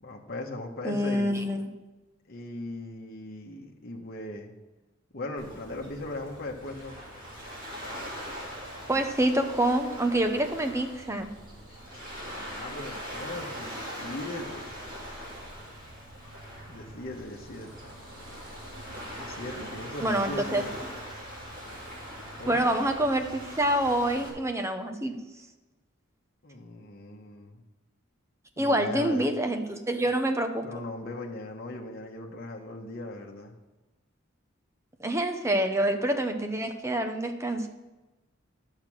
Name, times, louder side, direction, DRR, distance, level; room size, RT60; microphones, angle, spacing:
voice 1, 0.0-1.3 2.3-4.5 5.1-7.0 11.9-12.0 12.3-14.7 16.7-17.7 19.1-20.8 22.4-22.7 26.4-27.6 28.6-29.3 30.6-33.6, left 2 dB, 50° left, 0 dB, 1.1 m, -38 dB
voice 2, 0.8-1.7 8.9-11.3 20.0-20.7 22.5-25.2 28.6-30.6 35.0-37.7, right 1 dB, 15° right, 6 dB, 0.8 m, -26 dB
Waves surf, 5.4-24.3, equal, 45° right, 3.0 m, -41 dB
10.5 x 6.6 x 6.2 m, 1.1 s
head